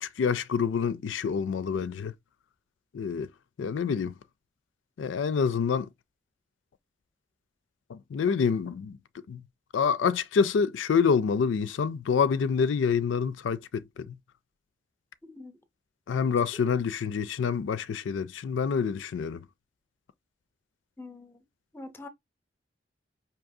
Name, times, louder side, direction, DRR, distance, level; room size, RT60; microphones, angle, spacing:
voice 1, 0.0-2.1 2.9-3.3 3.6-4.1 5.0-5.9 7.9-9.0 9.3-9.4 9.7-14.2 16.1-19.5, left 6 dB, 85° left, 0.4 m, -27 dB
voice 2, 21.0-21.4 21.7-22.1, left 2 dB, 15° left, 0.7 m, -44 dB
4.8 x 2.8 x 2.6 m
head